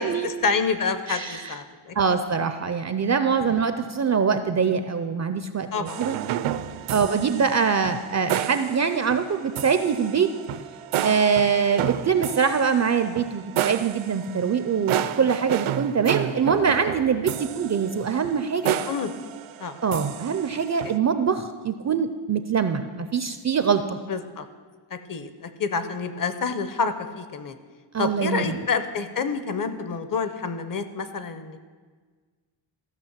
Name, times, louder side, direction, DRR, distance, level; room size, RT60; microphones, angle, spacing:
voice 1, 0.0-2.2 3.4-3.6 5.7-6.0 6.9-7.0 14.9-15.0 18.6-19.1 19.6-19.7 24.1-24.5 24.9-27.6 28.0-31.7, left 5 dB, 45° left, 10 dB, 0.7 m, -28 dB
voice 2, 1.1-1.6 2.0-6.2 6.9-10.3 11.0-18.8 19.8-24.0 27.9-28.6, right 6 dB, 35° right, 9 dB, 0.4 m, -23 dB
sound 1, 5.9-21.0, right 11 dB, 80° right, 0.6 m, -31 dB
14.0 x 5.9 x 7.3 m, 1.5 s
wide cardioid pair, 170°, 48 cm